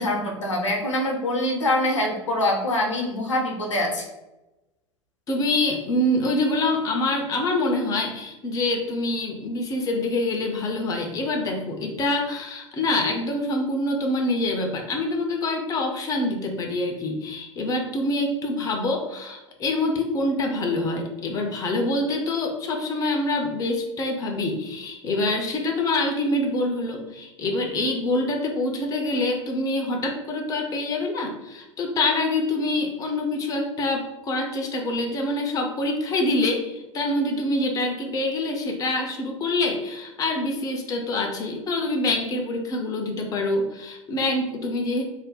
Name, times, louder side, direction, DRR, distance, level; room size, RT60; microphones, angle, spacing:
voice 1, 0.0-4.1, left 1 dB, 80° left, 1 dB, 0.7 m, -24 dB
voice 2, 5.3-45.0, left 2 dB, 20° left, 2 dB, 0.5 m, -25 dB
2.6 x 2.1 x 3.8 m, 1.0 s
figure-of-eight pair, 80°, 16 cm